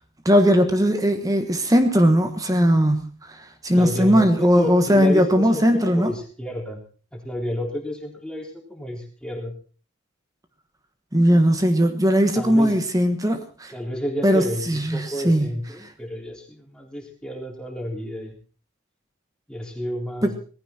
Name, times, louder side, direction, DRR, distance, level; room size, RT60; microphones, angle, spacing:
voice 1, 0.2-6.1 11.1-13.7 14.2-15.5 20.2-20.3, equal, 15° right, 7 dB, 1.4 m, -19 dB
voice 2, 3.7-6.8 7.1-9.5 12.3-12.8 13.7-18.3 19.5-20.4, left 1 dB, 5° left, 0 dB, 3.8 m, -31 dB
18.5 x 15.0 x 4.4 m, 0.39 s
head